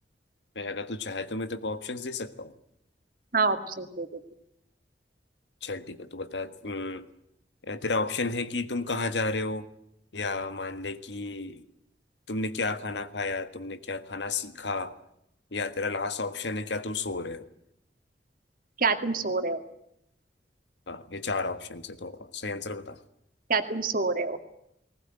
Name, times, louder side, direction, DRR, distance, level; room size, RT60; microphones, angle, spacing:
voice 1, 0.5-2.5 5.6-7.1 7.6-9.7 10.1-11.6 12.3-14.9 15.5-17.5 20.9-23.0, left 3 dB, 80° left, 11 dB, 1.6 m, -32 dB
voice 2, 3.3-4.1 18.8-19.6 23.5-24.4, right 4 dB, 55° right, 8 dB, 2.2 m, -26 dB
20.0 x 19.0 x 9.1 m, 0.79 s
head